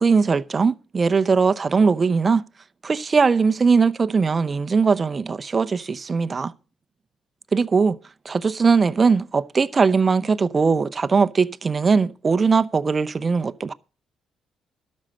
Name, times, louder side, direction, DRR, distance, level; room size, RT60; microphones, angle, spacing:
voice 1, 0.0-2.4 2.8-6.5 7.5-8.0 8.2-13.7, right 5 dB, 35° right, 0.7 m, -20 dB
12.5 x 6.4 x 7.8 m
cardioid pair, 75°, 0 cm